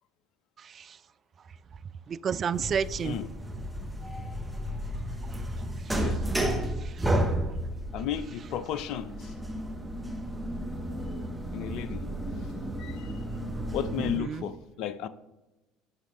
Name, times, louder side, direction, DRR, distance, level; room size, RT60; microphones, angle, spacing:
voice 1, 0.6-1.0 2.1-3.2 5.2-5.4 5.8-6.1 6.7-7.1 14.0-14.5, right 7 dB, 35° right, 15 dB, 0.3 m, -32 dB
sound 1, 2.5-14.2, right 1 dB, 10° right, 1.2 m, -32 dB
voice 2, 7.9-9.3 11.5-12.0 12.8-13.1 13.7-15.1, left 9 dB, 55° left, 14 dB, 0.5 m, -34 dB
11.5 x 6.2 x 2.6 m, 1.0 s
figure-of-eight pair, 65°, 0 cm